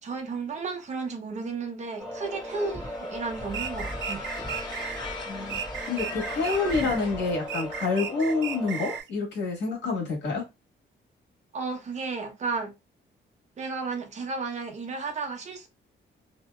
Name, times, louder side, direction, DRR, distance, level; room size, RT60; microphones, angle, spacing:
voice 1, 0.0-4.3 11.5-12.7 13.6-15.7, right 4 dB, 35° right, 0.8 m, -33 dB
sound 1, 2.0-9.0, left 1 dB, ahead, 1.0 m, -39 dB
sound 2, 2.2-8.0, left 2 dB, 20° left, 1.5 m, -39 dB
sound 3, 3.5-5.0 5.5-7.0 7.5-9.1, right 9 dB, 70° right, 0.4 m, -35 dB
voice 2, 5.3-5.6 5.9-10.5, left 4 dB, 65° left, 1.6 m, -28 dB
2.8 x 2.7 x 2.2 m
cardioid pair, 150°, 20 cm